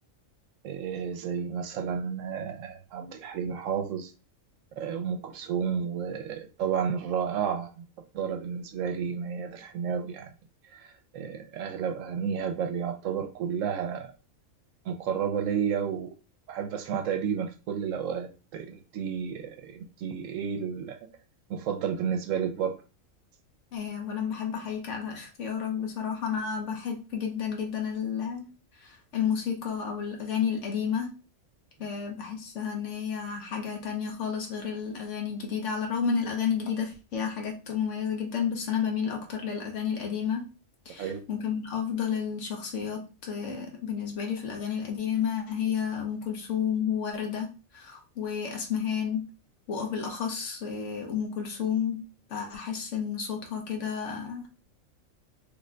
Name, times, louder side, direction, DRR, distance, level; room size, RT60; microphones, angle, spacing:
voice 1, 0.6-4.1 4.8-7.9 8.1-10.3 10.7-14.1 14.9-16.1 16.5-21.0 21.5-22.8 41.0-41.2, right 7 dB, 80° right, 5 dB, 1.0 m, -31 dB
voice 2, 23.7-28.4 28.8-31.1 31.8-40.4 40.8-47.5 47.7-49.2 49.7-52.0 52.3-54.5, left 7 dB, 70° left, 2 dB, 1.2 m, -31 dB
3.2 x 2.2 x 3.7 m, 0.33 s
omnidirectional pair, 1.3 m